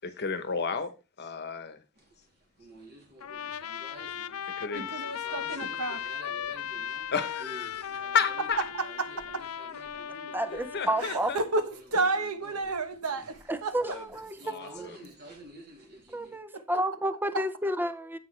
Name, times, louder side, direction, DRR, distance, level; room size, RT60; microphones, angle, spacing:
voice 1, 0.0-1.8 4.6-4.9 7.1-8.6 10.7-11.4 13.9-14.0 14.4-15.1, left 6 dB, 50° left, 1.0 m, -32 dB
sound 1, 2.0-16.4, right 1 dB, 50° right, 2.9 m, -50 dB
Trumpet, 3.2-11.1, left 9 dB, 70° left, 0.5 m, -37 dB
voice 2, 4.7-6.2 8.6-9.5 11.0-14.0 16.5-16.6 17.3-17.4, right 3 dB, 80° right, 1.2 m, -32 dB
voice 3, 10.3-11.3 13.5-15.0 16.1-18.2, right 1 dB, 10° right, 0.6 m, -31 dB
10.0 x 8.5 x 3.3 m
head